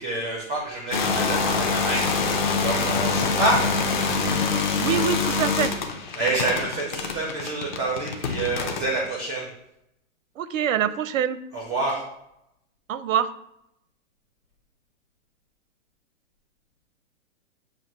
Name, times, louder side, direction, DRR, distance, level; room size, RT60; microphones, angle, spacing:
voice 1, 0.0-3.7 6.1-9.5 11.5-12.0, right 2 dB, 5° right, -4 dB, 0.4 m, -27 dB
sound 1, 0.9-9.0, left 4 dB, 40° left, 0.7 m, -25 dB
voice 2, 4.8-5.7 10.4-11.4 12.9-13.3, right 9 dB, 90° right, 13 dB, 0.6 m, -25 dB
7.4 x 2.5 x 5.2 m, 0.81 s
hypercardioid pair, 165°, 38 cm